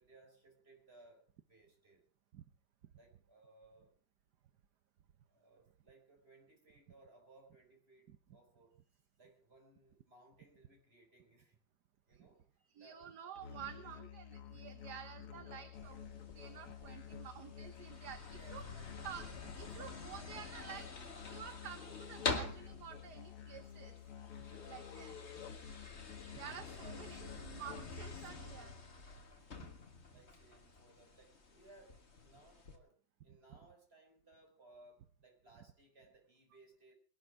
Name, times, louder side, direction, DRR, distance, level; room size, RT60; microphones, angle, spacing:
voice 1, 0.0-2.0 3.0-3.9 5.3-8.8 9.2-11.6 12.1-12.4 12.8-13.1 13.7-13.9 18.2-19.0 24.4-24.8 26.0-26.5 26.9-27.3 28.3-29.1 30.1-37.0, right 2 dB, 25° right, 1 dB, 4.9 m, -64 dB
voice 2, 12.7-16.0 16.3-18.6 19.0-19.3 19.5-24.0 24.7-25.4 26.3-28.7 29.3-29.4, right 9 dB, 55° right, 10 dB, 1.4 m, -50 dB
Musical instrument, 13.4-28.1, left 9 dB, 85° left, 2.3 m, -51 dB
sound 1, 15.7-32.8, left 3 dB, 30° left, 1.9 m, -47 dB
21.0 x 12.0 x 4.8 m, 0.41 s
omnidirectional pair, 2.4 m